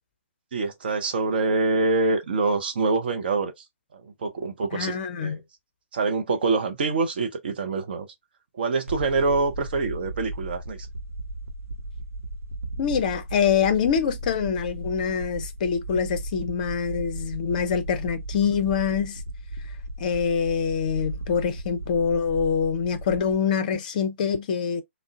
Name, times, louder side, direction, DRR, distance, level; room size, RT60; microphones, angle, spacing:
voice 1, 0.5-3.6 3.9-5.0 5.2-5.4 5.9-8.1 8.5-10.8, right 3 dB, 45° right, 0.5 m, -25 dB
voice 2, 4.7-5.4 12.8-19.2 20.0-24.8, left 6 dB, 35° left, 0.5 m, -25 dB
sound 1, 8.9-23.4, right 1 dB, 90° right, 0.6 m, -36 dB
3.6 x 2.0 x 2.3 m
figure-of-eight pair, 130°, 7 cm